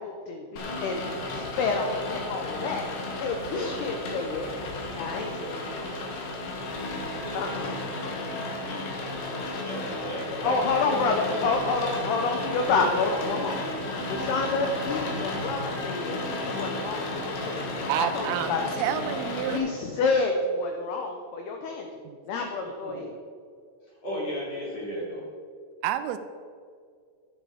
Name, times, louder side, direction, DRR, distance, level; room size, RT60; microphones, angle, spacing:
voice 1, 0.0-2.8 3.2-4.5 5.0-6.1 7.3-7.8 10.4-19.0 19.5-21.9 22.3-23.1, left 3 dB, 80° left, 4 dB, 2.4 m, -29 dB
Rain, 0.6-19.6, left 2 dB, 60° left, 2.8 m, -33 dB
voice 2, 9.6-11.3 22.8-23.0 24.0-25.2, equal, 35° left, -6 dB, 4.5 m, -35 dB
voice 3, 17.9-19.7 22.0-22.2 25.8-26.2, right 11 dB, 85° right, 11 dB, 3.2 m, -29 dB
12.5 x 9.8 x 5.0 m, 2.1 s
omnidirectional pair, 5.8 m